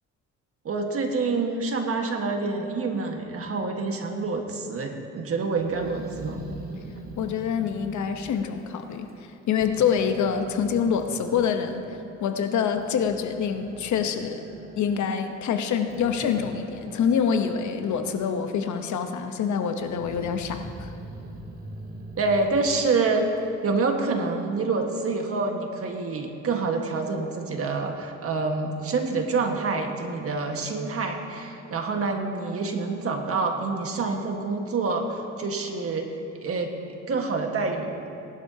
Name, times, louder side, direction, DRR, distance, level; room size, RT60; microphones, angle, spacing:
voice 1, 0.6-6.4 22.2-23.3 23.6-36.1 36.4-36.7 37.1-38.0, right 3 dB, 50° right, 3 dB, 1.5 m, -27 dB
Growling, 5.5-9.3 9.6-11.9 12.5-18.3 18.6-19.3 19.8-23.6, right 1 dB, 30° right, 1.8 m, -42 dB
voice 2, 7.2-14.4 14.8-20.9, left 7 dB, 70° left, 7 dB, 1.0 m, -26 dB
18.5 x 11.5 x 2.8 m, 2.7 s
cardioid pair, 90°, 30 cm